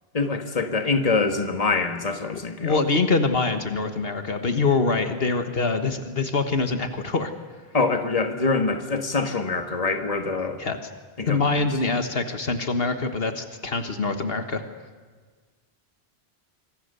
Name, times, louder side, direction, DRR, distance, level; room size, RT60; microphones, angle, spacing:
voice 1, 0.1-2.9 7.7-10.6 11.2-11.7, left 4 dB, 35° left, 6 dB, 1.7 m, -25 dB
voice 2, 2.6-7.3 10.6-10.8 11.3-14.6, left 3 dB, 70° left, 7 dB, 1.6 m, -24 dB
26.5 x 24.0 x 6.8 m, 1.4 s
omnidirectional pair, 1.0 m